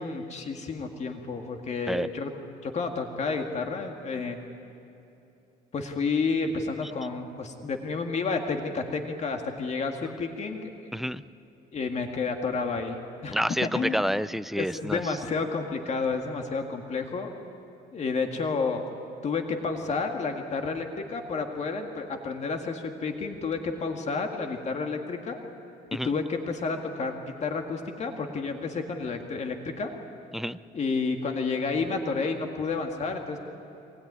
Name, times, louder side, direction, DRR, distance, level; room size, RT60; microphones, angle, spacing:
voice 1, 0.0-2.3 2.6-4.4 5.7-10.7 11.7-13.4 13.7-14.1 14.6-17.3 17.9-18.8 19.2-25.4 26.0-29.9 30.7-33.4, left 4 dB, 40° left, 4 dB, 2.1 m, -30 dB
voice 2, 10.9-11.2 13.3-15.0 25.9-26.1 30.3-30.6, equal, ahead, 15 dB, 0.5 m, -28 dB
23.5 x 20.0 x 9.7 m, 2.8 s
cardioid pair, 110°, 17 cm